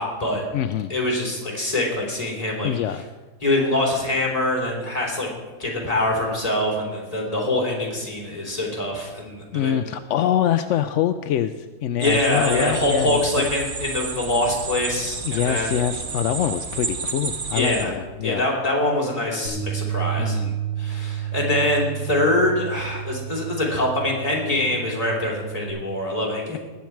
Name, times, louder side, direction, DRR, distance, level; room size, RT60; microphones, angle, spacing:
voice 1, 0.0-0.4 0.9-2.7 3.4-5.3 5.6-9.7 12.0-15.7 17.5-17.9 18.2-20.5 20.8-26.6, left 1 dB, 20° left, -3 dB, 3.4 m, -24 dB
voice 2, 0.5-0.9 2.6-3.0 9.5-13.4 15.2-18.5 20.2-20.6, left 10 dB, 70° left, 9 dB, 0.7 m, -25 dB
sound 1, 12.0-17.8, right 5 dB, 40° right, 0.9 m, -31 dB
Bass guitar, 19.4-25.7, right 10 dB, 55° right, 5.6 m, -31 dB
20.0 x 8.4 x 4.6 m, 1.4 s
omnidirectional pair, 1.7 m